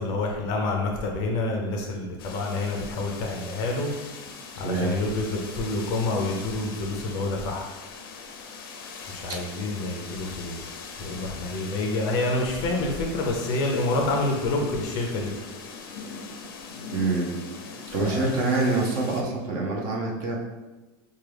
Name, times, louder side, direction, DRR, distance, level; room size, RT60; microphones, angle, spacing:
voice 1, 0.0-3.9 4.6-7.7 9.1-10.7 11.0-15.3 18.0-18.3, left 2 dB, 35° left, 1 dB, 0.5 m, -28 dB
sound 1, 2.2-19.2, left 5 dB, 90° left, 0.6 m, -41 dB
voice 2, 4.6-5.0 9.3-9.4 16.9-17.3 17.9-20.4, right 3 dB, 35° right, -1 dB, 0.6 m, -26 dB
4.6 x 2.3 x 3.3 m, 1.1 s
supercardioid pair, 180°, 12 cm